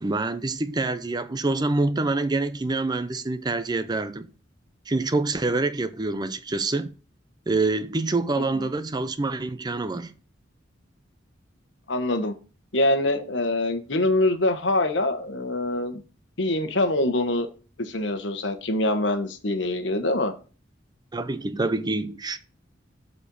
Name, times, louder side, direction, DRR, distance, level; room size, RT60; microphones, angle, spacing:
voice 1, 0.0-4.3 4.9-6.9 7.5-10.1 21.1-22.4, right 3 dB, 20° right, 0.5 m, -26 dB
voice 2, 11.9-12.3 12.7-16.0 16.4-17.5 17.8-20.3, left 1 dB, 70° left, 1.2 m, -24 dB
7.3 x 4.4 x 6.8 m
head